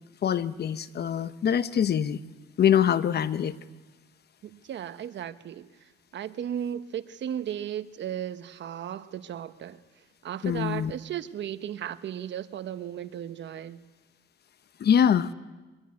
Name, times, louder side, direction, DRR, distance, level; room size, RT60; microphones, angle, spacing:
voice 1, 0.2-2.2 2.6-3.6 10.4-10.9 14.8-15.3, left 8 dB, 55° left, 1.0 m, -24 dB
voice 2, 4.4-9.8 10.2-13.8, right 10 dB, 65° right, 1.2 m, -35 dB
24.0 x 20.0 x 9.8 m
cardioid pair, 90°, 20 cm